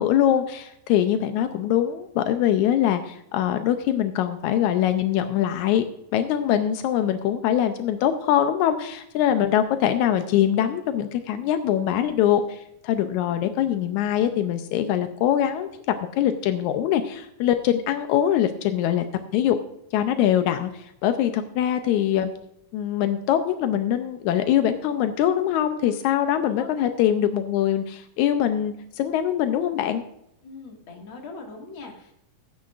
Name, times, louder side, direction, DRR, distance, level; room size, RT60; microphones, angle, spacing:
voice 1, 0.0-5.8 6.1-19.0 19.3-19.6 19.9-22.3 22.7-30.0, left 10 dB, 85° left, 8 dB, 1.7 m, -23 dB
voice 2, 30.4-32.1, left 4 dB, 40° left, 0 dB, 2.3 m, -41 dB
17.5 x 9.6 x 2.5 m, 0.77 s
omnidirectional pair, 4.2 m